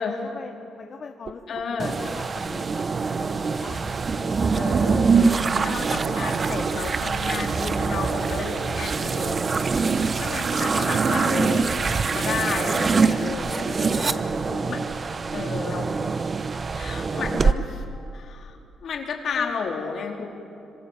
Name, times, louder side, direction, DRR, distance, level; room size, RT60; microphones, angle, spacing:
voice 1, 0.0-1.4 1.7-4.6 14.3-15.0 19.3-19.6, left 5 dB, 45° left, 4 dB, 1.4 m, -41 dB
sound 1, 1.2-10.3, right 6 dB, 55° right, 1.1 m, -40 dB
voice 2, 1.5-2.0 4.5-9.4 10.2-14.8 15.3-16.1 16.7-17.8 18.1-20.3, left 5 dB, 60° left, 1 dB, 3.9 m, -32 dB
sound 2, 1.8-17.5, right 4 dB, 35° right, 0.9 m, -24 dB
sound 3, 4.9-13.0, right 9 dB, 80° right, 0.9 m, -38 dB
26.0 x 25.0 x 7.4 m, 2.7 s
cardioid pair, 90°, 0 cm